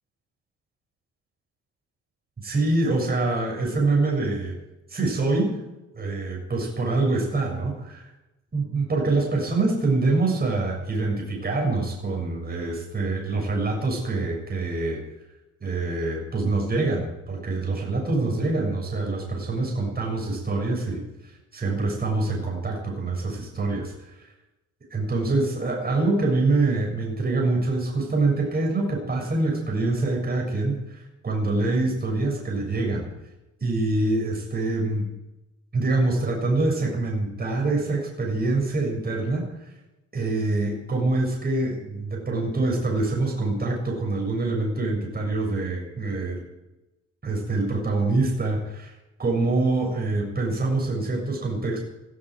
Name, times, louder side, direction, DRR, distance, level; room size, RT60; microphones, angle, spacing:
voice 1, 2.4-4.6 4.9-5.6 6.0-8.0 8.5-15.0 15.6-21.0 21.5-23.9 24.9-33.1 33.6-35.1 35.7-39.5 40.1-46.4 47.2-48.9 49.2-51.8, right 2 dB, 30° right, 0 dB, 6.9 m, -25 dB
19.0 x 16.0 x 4.8 m, 0.98 s
cardioid pair, 90°, 30 cm